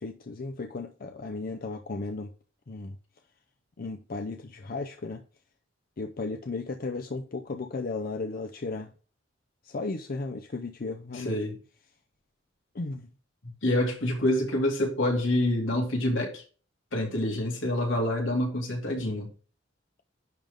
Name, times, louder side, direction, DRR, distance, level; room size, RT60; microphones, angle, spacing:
voice 1, 0.0-2.3 2.7-3.0 3.8-5.2 6.0-8.9 9.6-11.4 12.7-13.1, left 3 dB, 50° left, 0.6 m, -35 dB
voice 2, 11.1-11.6 13.6-16.4 16.9-19.3, left 1 dB, 80° left, 2.5 m, -27 dB
10.5 x 3.5 x 3.7 m
head